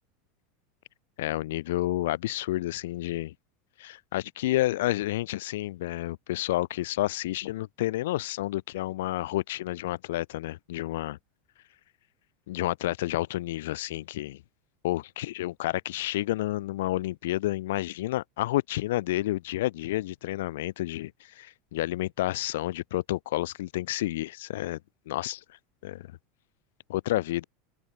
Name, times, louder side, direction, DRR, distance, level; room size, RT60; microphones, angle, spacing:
voice 1, 1.2-3.3 3.8-11.2 12.5-14.4 14.8-21.1 21.4-24.8 25.1-25.4 25.8-26.1 26.9-27.4, left 16 dB, 85° left, 1.2 m, -30 dB
open air
supercardioid pair, 160°, 0 cm